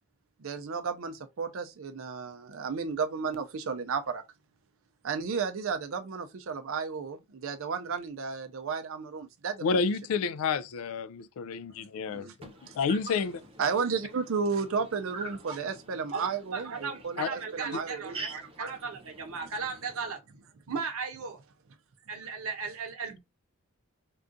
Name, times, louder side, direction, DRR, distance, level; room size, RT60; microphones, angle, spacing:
voice 1, 0.4-4.2 5.0-9.8 12.1-12.3 13.6-15.3 15.6-18.2, right 5 dB, 65° right, 0.5 m, -33 dB
voice 2, 9.6-12.3 12.8-13.3 17.2-17.3 17.7-17.8, left 5 dB, 80° left, 0.3 m, -29 dB
voice 3, 12.4-20.1, right 3 dB, 25° right, 0.8 m, -46 dB
voice 4, 16.5-18.2 18.6-20.2 20.7-21.4 22.1-23.2, right 5 dB, 80° right, 0.9 m, -36 dB
3.6 x 2.3 x 2.5 m
head